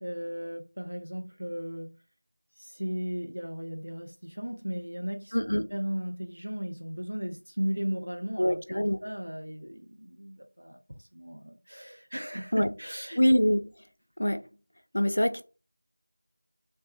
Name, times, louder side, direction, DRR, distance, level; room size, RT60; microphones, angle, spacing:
voice 1, 0.0-2.0 2.6-13.2, equal, 75° right, 0.5 m, -36 dB
voice 2, 5.3-5.7 8.4-9.0 12.5-12.7 13.2-13.7 14.2-14.4 14.9-15.4, equal, 55° left, 0.4 m, -24 dB
3.1 x 2.2 x 2.9 m
figure-of-eight pair, 175°, 0 cm